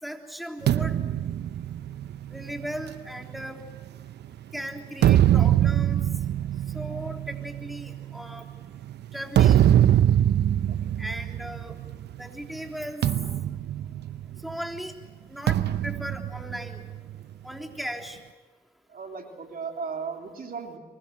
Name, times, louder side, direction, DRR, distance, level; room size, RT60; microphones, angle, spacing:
voice 1, 0.0-1.0 2.3-3.6 4.5-6.1 6.7-8.5 9.1-9.8 11.0-11.8 12.2-13.0 14.4-14.9 15.3-16.8 17.4-18.2, equal, ahead, 3 dB, 3.4 m, -37 dB
sound 1, 0.7-4.3 4.8-12.2 12.4-12.7 13.0-14.6 15.5-17.2, right 11 dB, 75° right, 0.7 m, -23 dB
voice 2, 10.7-11.0 14.3-14.4 18.9-20.8, right 5 dB, 55° right, 3 dB, 3.3 m, -37 dB
24.0 x 22.0 x 7.6 m, 1.3 s
supercardioid pair, 45°, 18 cm